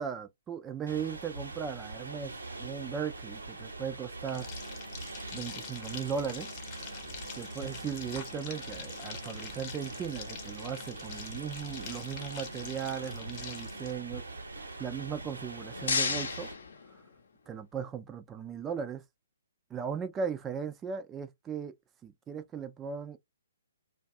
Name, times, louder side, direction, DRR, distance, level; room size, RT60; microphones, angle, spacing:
voice 1, 0.0-4.5 5.3-6.5 7.4-14.2 14.5-16.5 17.5-19.0 19.7-21.7 22.0-23.2, right 7 dB, 15° right, 0.3 m, -37 dB
sound 1, 0.9-16.5, right 3 dB, 80° right, 0.9 m, -43 dB
sound 2, 4.2-13.9, left 6 dB, 30° left, 0.8 m, -45 dB
sound 3, 15.3-17.5, left 5 dB, 65° left, 0.7 m, -34 dB
2.5 x 2.3 x 2.4 m
figure-of-eight pair, 130°, 0 cm